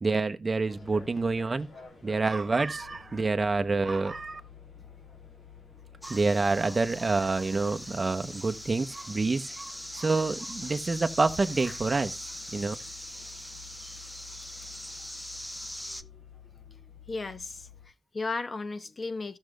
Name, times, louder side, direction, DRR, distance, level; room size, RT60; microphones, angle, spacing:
voice 1, 0.0-1.7 2.0-4.4 6.0-12.2 12.5-12.8, right 3 dB, 35° right, 0.8 m, -27 dB
sound 1, 0.7-17.9, left 6 dB, 80° left, 3.4 m, -51 dB
sound 2, 6.0-16.0, equal, 5° left, 0.5 m, -41 dB
voice 2, 17.1-19.4, left 3 dB, 40° left, 0.8 m, -35 dB
16.0 x 6.4 x 2.3 m
wide cardioid pair, 125°, 0 cm